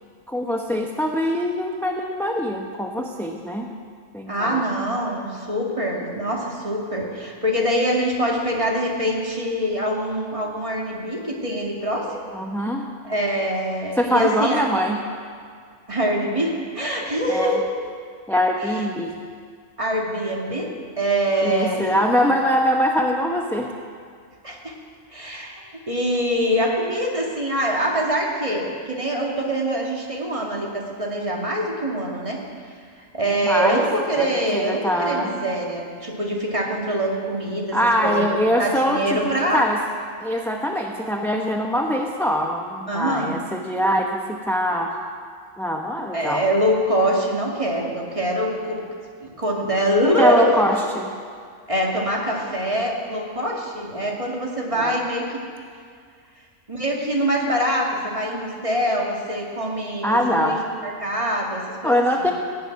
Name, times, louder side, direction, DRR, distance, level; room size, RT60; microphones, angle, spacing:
voice 1, 0.3-3.7 4.1-4.6 12.3-12.9 13.9-15.0 17.3-17.6 18.3-19.2 21.4-23.7 33.4-33.8 34.2-35.3 37.7-39.8 40.2-45.0 45.6-46.4 50.2-51.1 54.7-55.0 60.0-60.6 61.8-62.3, equal, ahead, 1 dB, 0.7 m, -23 dB
voice 2, 4.3-12.3 13.0-14.7 15.9-17.7 18.7-18.8 19.8-20.7 21.0-22.3 24.4-24.7 25.1-32.4 33.0-37.8 38.0-39.6 42.9-43.4 46.1-48.8 49.2-50.5 51.7-55.4 56.7-60.6 60.8-62.3, equal, 25° right, -2 dB, 2.1 m, -24 dB
16.5 x 7.2 x 9.4 m, 2.1 s
omnidirectional pair, 1.4 m